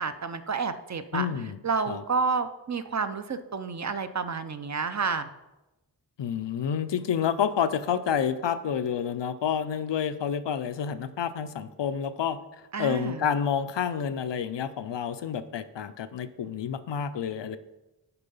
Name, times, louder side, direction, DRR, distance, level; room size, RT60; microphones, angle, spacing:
voice 1, 0.0-1.3 1.6-5.3 12.7-13.3, right 5 dB, 40° right, 10 dB, 0.5 m, -30 dB
voice 2, 1.1-1.6 1.9-2.0 6.2-12.4 12.8-17.6, left 8 dB, 85° left, 11 dB, 0.5 m, -29 dB
6.8 x 4.7 x 5.4 m, 0.99 s
wide cardioid pair, 75°, 42 cm